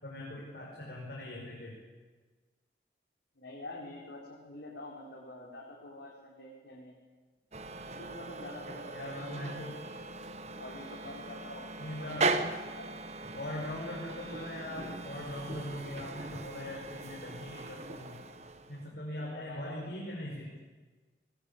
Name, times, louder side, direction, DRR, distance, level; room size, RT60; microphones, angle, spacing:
voice 1, 0.0-1.8 8.9-9.7 11.8-12.3 13.3-18.2 18.7-20.5, left 1 dB, 60° left, -3 dB, 5.8 m, -41 dB
voice 2, 3.4-6.9 7.9-9.8 10.5-13.0 19.1-19.9, left 2 dB, 90° left, -3 dB, 4.6 m, -47 dB
sound 1, 7.5-18.9, right 3 dB, 40° right, 1.2 m, -38 dB
22.5 x 20.5 x 8.8 m, 1.4 s
head